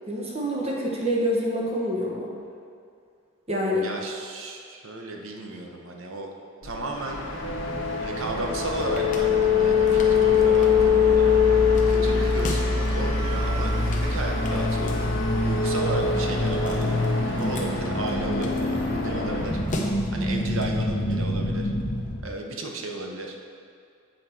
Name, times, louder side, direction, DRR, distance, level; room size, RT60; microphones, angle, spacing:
voice 1, 0.1-2.3 3.5-3.9, equal, 30° right, -4 dB, 1.0 m, -26 dB
voice 2, 3.8-6.3 6.6-7.3 8.0-11.3 11.9-15.0 15.4-17.0 17.3-19.6 20.1-21.6 22.2-23.4, right 2 dB, 70° right, 1 dB, 0.8 m, -34 dB
sound 1, 6.6-19.4, left 5 dB, 85° left, 1.0 m, -23 dB
sound 2, 6.9-19.6, left 2 dB, 65° left, 1.4 m, -38 dB
sound 3, 7.4-22.2, left 1 dB, 35° left, 0.7 m, -30 dB
7.7 x 4.6 x 4.3 m, 2.3 s
head